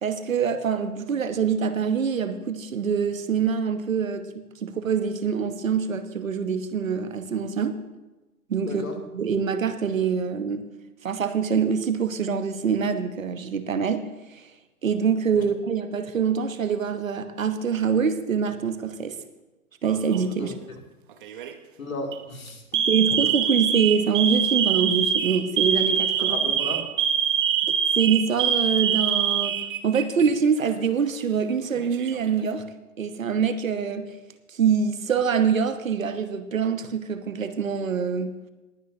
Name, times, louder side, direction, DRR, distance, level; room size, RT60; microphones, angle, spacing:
voice 1, 0.0-7.8 8.5-8.8 9.1-10.6 11.0-14.5 14.8-19.2 19.8-20.5 22.7-26.4 27.9-29.6 29.8-32.6 33.0-34.1 34.5-38.3, right 6 dB, 60° right, 10 dB, 1.1 m, -25 dB
voice 2, 8.6-9.0 15.3-15.5 20.4-20.8 21.8-22.6 26.2-26.8, left 2 dB, 65° left, 2 dB, 2.6 m, -34 dB
Alarm, 19.8-20.3 21.2-21.5 22.0-22.2 22.7-30.3 30.6-30.7 31.6-32.3, right 8 dB, 35° right, 0.9 m, -24 dB
20.0 x 9.4 x 2.8 m, 1.1 s
figure-of-eight pair, 120°, 44 cm